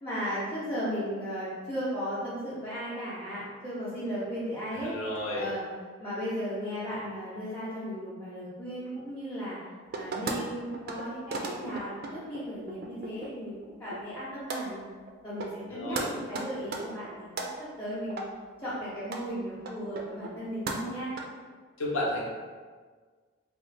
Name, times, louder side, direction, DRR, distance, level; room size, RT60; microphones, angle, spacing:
voice 1, 0.0-5.7 6.0-9.6 9.9-13.5 13.8-14.8 15.2-18.2 18.6-21.1, equal, 10° left, -12 dB, 0.7 m, -36 dB
voice 2, 4.8-5.5 15.7-16.1 21.8-22.3, left 1 dB, 75° left, -3 dB, 0.8 m, -32 dB
sound 1, 9.9-10.4 10.7-11.0 11.3-13.3 13.6-14.2 14.5-14.6 15.1-15.2 15.4-15.7 16.0-16.1 16.3-17.5 18.1-18.2 18.7-18.8 19.0-19.2 19.7-20.4 20.7-21.2, right 3 dB, 45° right, 0.3 m, -36 dB
3.1 x 2.3 x 3.2 m, 1.5 s
head